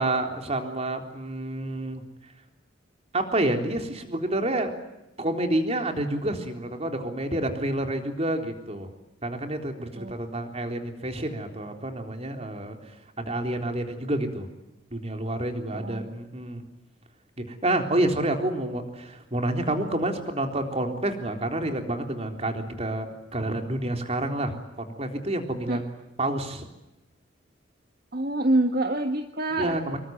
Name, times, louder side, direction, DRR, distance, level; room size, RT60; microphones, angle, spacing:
voice 1, 0.0-2.0 3.1-4.7 5.2-8.9 9.2-14.5 14.9-16.6 17.4-26.7 29.5-30.0, right 1 dB, 35° right, 5 dB, 3.7 m, -29 dB
voice 2, 15.7-16.1 25.7-25.8 28.1-29.8, right 1 dB, 55° right, 6 dB, 1.6 m, -26 dB
26.5 x 22.5 x 9.4 m, 0.96 s
head